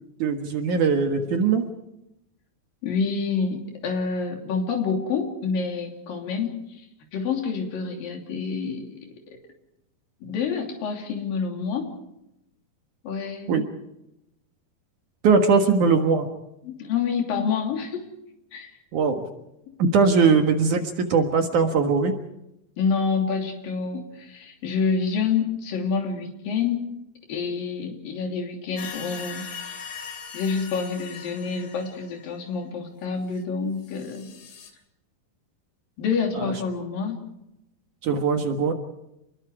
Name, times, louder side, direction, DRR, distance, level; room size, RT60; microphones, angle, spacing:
voice 1, 0.2-1.6 13.5-13.6 15.2-16.3 18.9-19.2 19.8-22.1 36.4-36.5 38.0-38.7, right 5 dB, 60° right, 5 dB, 2.8 m, -20 dB
voice 2, 2.8-6.5 6.8-6.9 7.1-9.1 10.2-11.9 13.0-13.6 16.6-18.0 18.5-18.7 19.7-19.8 22.8-26.8 27.3-29.5 30.3-34.3 36.0-37.2, left 5 dB, 65° left, 2 dB, 4.6 m, -27 dB
sound 1, 28.8-32.5 33.4-33.5 33.8-34.7, left 6 dB, 85° left, 4.7 m, -40 dB
28.5 x 21.5 x 4.9 m, 0.85 s
omnidirectional pair, 4.3 m